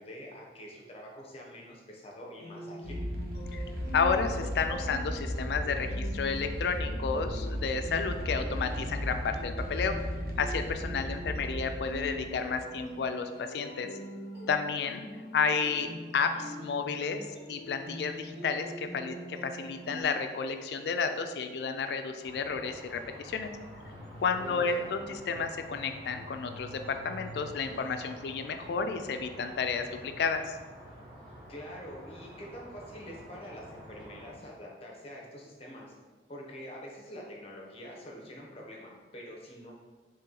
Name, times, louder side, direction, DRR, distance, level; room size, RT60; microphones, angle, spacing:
voice 1, 0.0-3.0 24.4-25.0 31.5-35.9 36.3-39.7, equal, 35° left, -2 dB, 0.7 m, -45 dB
sound 1, 2.4-20.0, equal, 75° right, 0.9 m, -44 dB
sound 2, 2.8-12.9, equal, 55° right, 0.6 m, -36 dB
voice 2, 3.9-10.0 10.4-13.9 14.5-15.1 15.3-23.5 24.2-30.6, left 5 dB, 65° left, 7 dB, 0.3 m, -31 dB
sound 3, 22.2-34.3, equal, 30° right, 0.9 m, -48 dB
3.1 x 2.9 x 3.7 m, 1.3 s
head